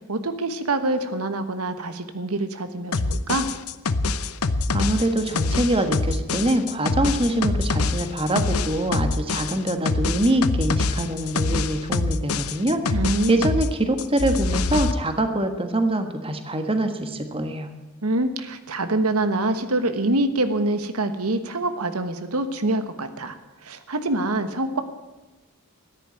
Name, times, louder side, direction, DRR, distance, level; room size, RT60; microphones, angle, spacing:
voice 1, 0.1-3.5 12.9-13.5 18.0-24.8, right 2 dB, 90° right, 9 dB, 1.3 m, -25 dB
sound 1, 2.9-13.7 14.0-14.9, left 3 dB, 85° left, 0.8 m, -25 dB
voice 2, 4.7-13.0 13.3-17.7, right 1 dB, 25° right, 7 dB, 1.5 m, -24 dB
13.5 x 10.5 x 9.2 m, 1.2 s
head